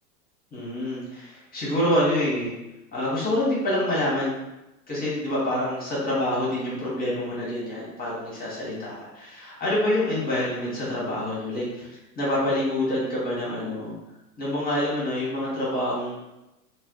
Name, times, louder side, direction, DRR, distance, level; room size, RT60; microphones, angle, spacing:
voice 1, 0.5-2.5 2.9-4.3 4.9-14.0 14.4-16.1, left 1 dB, 20° left, -6 dB, 1.0 m, -27 dB
2.4 x 2.2 x 3.6 m, 0.95 s
hypercardioid pair, 105°, 47 cm